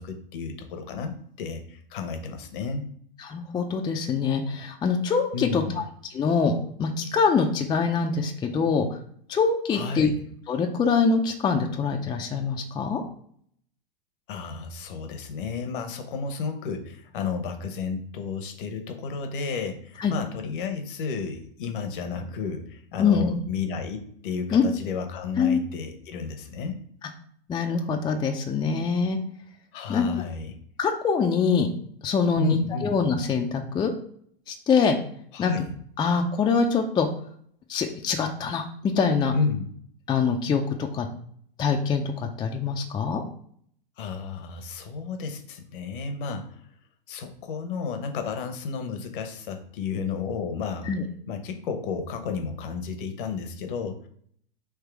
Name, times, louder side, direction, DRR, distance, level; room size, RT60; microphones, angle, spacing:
voice 1, 0.0-2.9 5.3-5.8 9.7-10.1 14.3-26.8 29.7-30.5 32.4-33.0 35.3-35.7 39.3-39.7 44.0-46.6 47.1-50.9 51.3-54.0, left 5 dB, 60° left, 6 dB, 1.0 m, -32 dB
voice 2, 3.2-5.8 6.1-6.5 6.8-8.9 9.3-10.1 10.5-13.0 20.0-20.1 23.0-23.3 24.5-24.6 25.4-25.6 27.5-29.2 29.9-30.1 30.8-31.7 32.0-33.9 34.5-35.0 35.4-35.5 36.0-37.1 37.7-39.3 40.1-41.1 41.6-43.2 50.9-51.0, left 5 dB, 15° left, 3 dB, 0.5 m, -24 dB
3.6 x 3.2 x 4.6 m, 0.63 s
hypercardioid pair, 105°, 29 cm